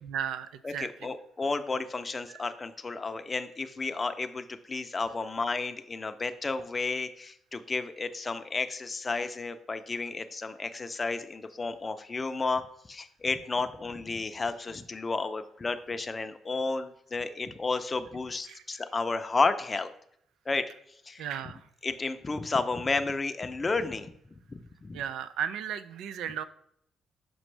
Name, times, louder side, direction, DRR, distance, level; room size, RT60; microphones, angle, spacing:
voice 1, 0.0-1.1 2.3-2.4 18.5-18.6 21.2-21.7 24.9-26.4, right 9 dB, 85° right, 13 dB, 0.3 m, -35 dB
voice 2, 0.6-12.6 12.9-19.9 20.5-20.7 21.1-21.2 21.8-24.1 24.5-25.0, left 3 dB, 30° left, 9 dB, 0.5 m, -32 dB
6.1 x 5.0 x 3.2 m, 0.71 s
cardioid pair, 90°, 0 cm